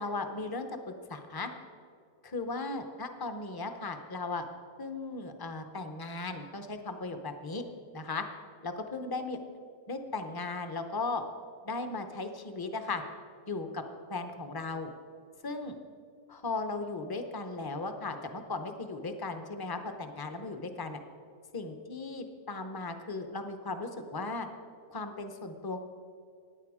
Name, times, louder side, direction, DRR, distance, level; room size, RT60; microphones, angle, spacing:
voice 1, 0.0-1.5 2.2-4.4 4.8-7.6 7.9-8.2 8.6-9.4 9.9-11.2 11.6-13.0 13.5-13.8 14.1-14.9 15.4-15.7 16.3-21.0 21.5-24.5 24.9-25.8, left 3 dB, 35° left, 7 dB, 0.3 m, -36 dB
16.0 x 9.8 x 4.9 m, 2.3 s
omnidirectional pair, 1.7 m